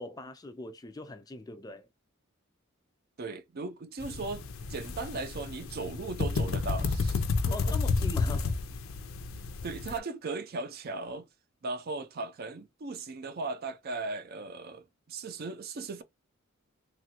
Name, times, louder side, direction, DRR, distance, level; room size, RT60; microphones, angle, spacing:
voice 1, 0.0-1.9 7.5-8.6, left 2 dB, 20° left, 0.3 m, -41 dB
voice 2, 3.2-4.4 4.7-7.8 9.6-11.3 11.6-16.0, right 3 dB, 50° right, 0.4 m, -37 dB
sound 1, 4.0-10.0, left 4 dB, 80° left, 0.5 m, -31 dB
3.2 x 2.4 x 2.8 m
head